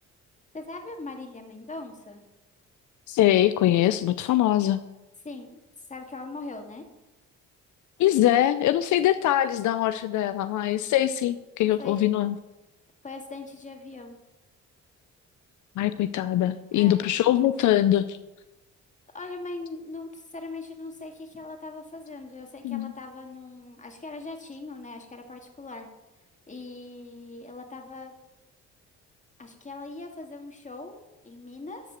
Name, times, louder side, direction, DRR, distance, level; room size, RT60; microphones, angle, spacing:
voice 1, 0.5-2.2 5.2-5.6 5.9-6.8 11.8-12.0 13.0-14.2 16.7-17.0 19.1-25.9 26.5-28.1 29.4-31.8, left 3 dB, 25° left, 3 dB, 2.1 m, -40 dB
voice 2, 3.1-4.8 8.0-12.4 15.8-18.2 22.6-22.9, left 13 dB, 75° left, 12 dB, 0.5 m, -22 dB
13.5 x 4.8 x 7.2 m, 1.0 s
cardioid pair, 90°, 30 cm